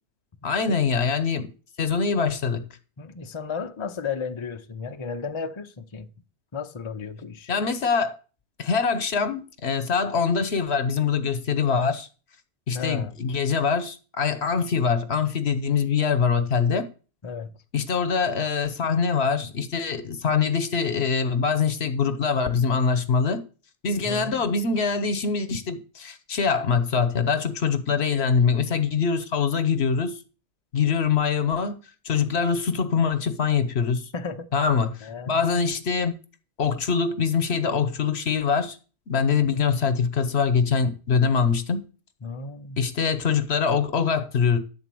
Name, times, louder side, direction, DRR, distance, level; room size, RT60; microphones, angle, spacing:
voice 1, 0.4-1.5 1.8-2.6 7.5-8.2 8.6-12.1 12.7-16.9 17.7-23.4 23.8-30.2 30.7-31.8 32.0-34.1 34.5-36.2 36.6-38.8 39.1-41.8 42.8-44.6, left 5 dB, 75° left, 1.2 m, -24 dB
voice 2, 3.0-6.1 6.5-7.5 12.7-13.2 17.2-17.5 24.0-24.5 34.1-34.5 35.0-35.4 42.2-42.8, left 5 dB, 30° left, 0.6 m, -34 dB
11.0 x 4.1 x 7.7 m
omnidirectional pair, 1.1 m